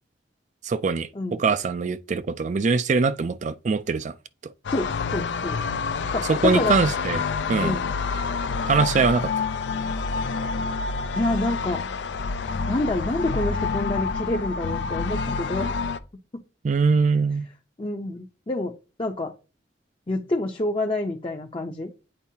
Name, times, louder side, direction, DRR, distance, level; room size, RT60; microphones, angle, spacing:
voice 1, 0.6-4.1 6.3-7.2 7.5-7.8 8.6-9.3 16.6-17.5, right 4 dB, 40° right, 0.4 m, -22 dB
sound 1, 4.6-16.0, left 5 dB, 75° left, 0.4 m, -28 dB
voice 2, 4.7-5.6 6.1-6.9 7.6-7.9 11.1-11.8 12.7-15.8 16.3-16.4 17.8-18.7 19.0-19.3 20.1-21.9, left 2 dB, 30° left, 0.6 m, -27 dB
8.8 x 4.5 x 2.8 m
head